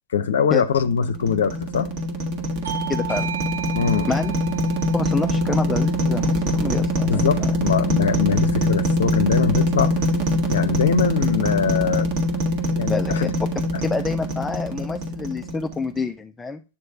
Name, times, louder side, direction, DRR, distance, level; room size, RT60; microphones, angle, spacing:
voice 1, 0.1-1.9 3.7-4.1 7.0-9.9 10.5-12.1 12.8-13.3, left 7 dB, 65° left, 0.7 m, -22 dB
sound 1, 0.8-16.0, equal, 40° right, 1.6 m, -23 dB
Bell / Doorbell, 2.6-7.8, right 9 dB, 65° right, 0.8 m, -35 dB
voice 2, 2.9-3.3 4.1-4.3 4.9-7.5 12.9-13.3 13.8-16.6, left 4 dB, 10° left, 0.4 m, -28 dB
8.7 x 3.3 x 5.3 m
figure-of-eight pair, 90°, 0 cm